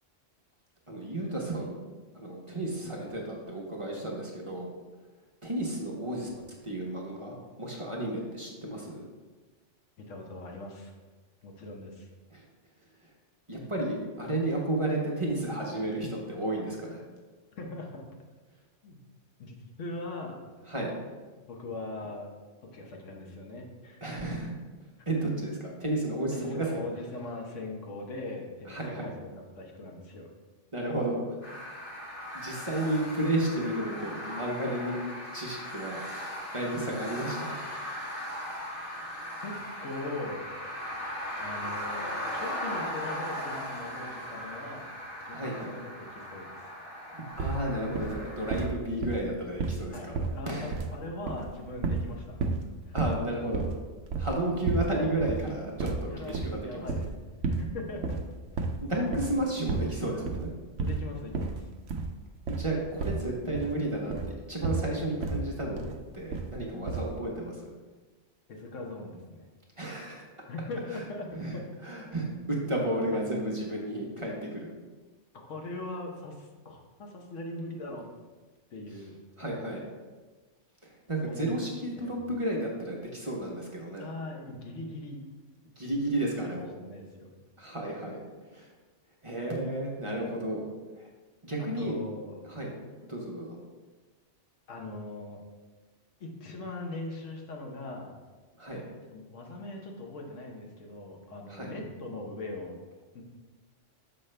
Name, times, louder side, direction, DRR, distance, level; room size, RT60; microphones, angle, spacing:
voice 1, 0.9-1.8 2.1-4.7 5.4-9.0 12.3-12.4 13.5-17.0 20.7-20.9 24.0-24.5 25.1-26.7 28.7-29.1 30.7-31.4 32.3-35.0 35.3-36.0 36.5-37.6 45.3-45.7 47.1-50.2 50.5-50.7 52.9-53.7 54.2-56.9 58.8-60.5 62.5-65.8 66.1-67.7 69.8-70.3 70.9-71.0 71.3-74.7 79.4-79.9 81.1-84.0 85.8-86.7 87.6-88.2 88.5-88.7 89.2-90.7 91.0-91.1 91.4-92.0 92.4-92.7 93.0-93.6 98.6-98.9 101.5-101.7, right 1 dB, 30° right, -2 dB, 0.9 m, -32 dB
voice 2, 10.0-10.9 11.4-12.1 17.5-18.1 18.8-19.0 19.4-20.4 21.5-22.3 22.7-24.0 26.3-29.3 29.6-30.3 39.4-39.5 39.8-40.4 41.4-44.9 45.2-45.9 46.3-46.5 49.9-52.4 52.8-52.9 56.1-58.2 60.8-61.6 68.5-69.5 70.5-71.6 73.1-73.2 75.3-78.1 78.7-79.1 81.2-81.5 82.0-82.2 84.0-85.2 86.5-87.3 91.6-92.4 94.7-95.4 96.2-98.1 99.1-102.8 103.1-103.2, left 2 dB, 85° left, 1 dB, 1.3 m, -40 dB
sound 1, 31.4-48.7, equal, 45° left, 1.4 m, -38 dB
sound 2, 47.4-47.6 47.9-48.2 48.5-49.9 50.1-51.0 51.2-52.1 52.4-52.7 53.0-53.2 53.5-54.9 55.2-55.4 55.8-57.1 57.4-57.7 58.0-58.8 59.1-59.4 59.7-60.0 60.2-60.5 60.8-61.0 61.3-61.6 61.9-62.1 62.4-62.7 63.0-63.7 64.1-64.4 64.6-64.9 65.2-65.5 65.8-66.0 66.3-66.6 66.9-67.1, right 4 dB, 80° right, 0.9 m, -31 dB
6.7 x 5.1 x 3.3 m, 1.3 s
omnidirectional pair, 1.3 m